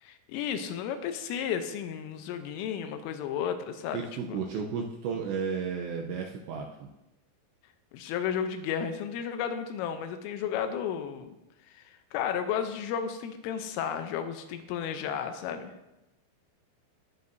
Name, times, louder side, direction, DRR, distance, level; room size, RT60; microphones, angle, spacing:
voice 1, 0.0-4.0 4.3-4.4 7.9-11.4 11.7-11.8 12.1-15.7, left 8 dB, 80° left, 8 dB, 3.2 m, -33 dB
voice 2, 3.9-6.9, right 6 dB, 80° right, 1 dB, 2.6 m, -33 dB
19.0 x 6.9 x 2.7 m, 0.94 s
omnidirectional pair, 5.8 m